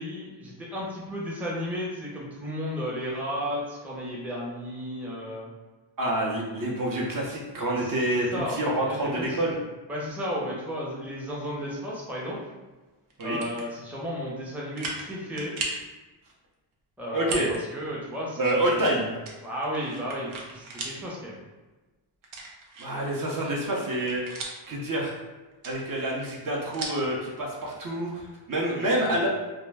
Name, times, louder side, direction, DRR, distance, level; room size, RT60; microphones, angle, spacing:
voice 1, 0.0-5.5 7.8-7.9 8.3-8.6 8.9-9.5 9.9-12.4 13.2-15.6 17.0-19.0 19.4-21.4 28.6-29.1, equal, 5° right, -5 dB, 0.5 m, -34 dB
voice 2, 6.0-9.6 13.2-13.4 17.1-17.5 18.4-19.1 22.8-24.2 24.7-25.1 25.6-29.3, right 1 dB, 45° right, -3 dB, 0.6 m, -27 dB
sound 1, 13.1-13.7 14.2-14.3 14.7-15.1 15.4-15.9 17.2-17.6 18.0-18.1 19.2-21.0 21.4-21.5 22.2-23.1 23.5-24.8 25.5-27.1, right 3 dB, 85° right, 0.7 m, -36 dB
2.3 x 2.1 x 3.3 m, 1.2 s
cardioid pair, 95°, 47 cm